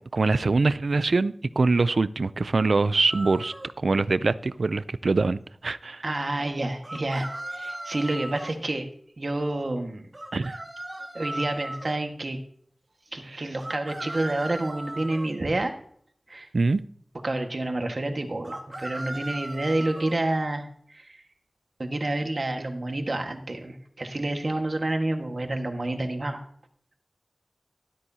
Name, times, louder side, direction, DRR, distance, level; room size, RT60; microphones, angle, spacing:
voice 1, 0.1-6.0 10.3-10.6 13.3-13.5 16.5-16.8, right 3 dB, 85° right, 0.4 m, -24 dB
sound 1, 3.1-3.7 6.8-8.6 10.1-11.9 13.6-15.3 18.4-20.2, right 1 dB, 40° right, 1.9 m, -37 dB
voice 2, 6.0-8.9 9.2-10.1 11.1-12.4 13.1-15.7 16.3-16.5 17.2-21.2 21.8-26.4, right 2 dB, 60° right, 1.6 m, -29 dB
13.0 x 12.5 x 2.8 m
wide cardioid pair, 50°, 0 cm